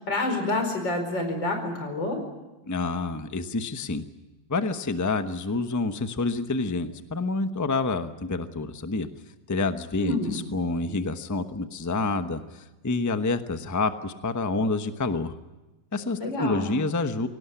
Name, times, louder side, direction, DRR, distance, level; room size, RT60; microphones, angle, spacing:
voice 1, 0.0-2.2 10.0-10.3 16.1-16.7, left 2 dB, 90° left, 5 dB, 5.5 m, -28 dB
voice 2, 2.6-4.1 4.5-9.1 9.5-15.3 15.9-17.3, left 3 dB, 15° left, 9 dB, 0.8 m, -28 dB
23.5 x 18.0 x 10.0 m, 1.1 s
omnidirectional pair, 1.9 m